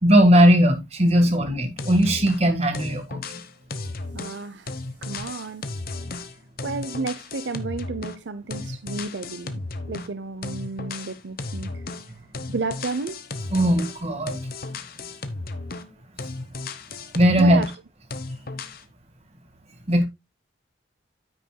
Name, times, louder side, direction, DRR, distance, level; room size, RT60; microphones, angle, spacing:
voice 1, 0.0-3.4 13.5-14.4 17.1-17.6 19.9-20.0, equal, 35° right, 1.8 m, -18 dB
sound 1, 1.8-2.5 2.7-8.3 8.5-10.1 10.4-12.1 12.3-17.8 18.1-18.8, left 3 dB, 55° left, 0.9 m, -34 dB
voice 2, 4.1-4.7 5.0-5.6 6.6-9.6 9.9-11.8 12.5-13.2 17.4-17.7, right 3 dB, 75° right, 0.6 m, -32 dB
9.6 x 9.1 x 2.2 m
head